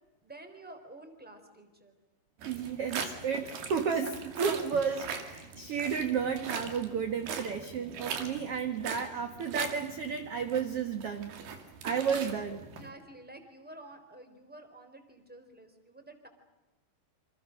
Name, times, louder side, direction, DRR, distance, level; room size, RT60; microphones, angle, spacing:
voice 1, 0.2-2.0 12.3-16.3, right 2 dB, 5° right, 7 dB, 3.1 m, -50 dB
voice 2, 2.4-11.3 11.8-12.6, right 6 dB, 55° right, 7 dB, 1.8 m, -32 dB
sound 1, 2.4-12.9, right 6 dB, 85° right, 4.4 m, -41 dB
28.5 x 27.0 x 6.5 m, 1.1 s
omnidirectional pair, 4.4 m